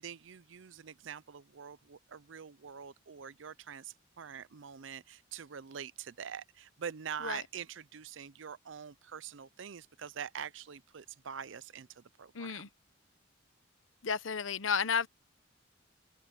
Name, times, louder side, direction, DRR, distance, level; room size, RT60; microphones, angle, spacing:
voice 1, 0.0-12.7, right 7 dB, 75° right, 0.6 m, -45 dB
voice 2, 12.3-12.7 14.0-15.1, left 6 dB, 90° left, 0.9 m, -32 dB
head